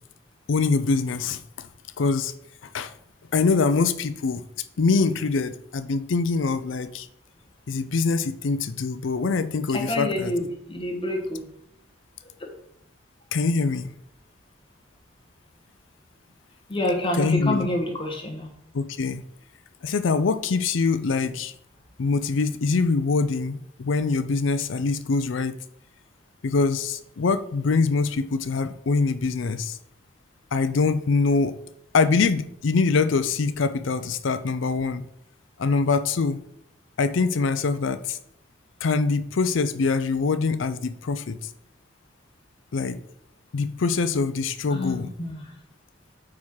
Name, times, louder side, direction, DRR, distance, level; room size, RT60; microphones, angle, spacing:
voice 1, 0.5-1.7 2.0-2.3 2.7-2.9 3.3-4.4 4.8-7.1 7.7-10.3 13.3-13.9 17.2-17.7 18.7-19.2 19.8-21.5 22.0-25.6 26.4-29.8 30.5-31.6 31.9-35.1 35.6-36.4 37.0-38.2 38.8-41.5 42.7-43.0 43.5-45.1, left 4 dB, 70° left, 0.5 m, -24 dB
voice 2, 9.7-11.5 16.7-18.5 44.7-45.5, left 1 dB, 25° left, 1.4 m, -28 dB
8.6 x 3.7 x 4.7 m
head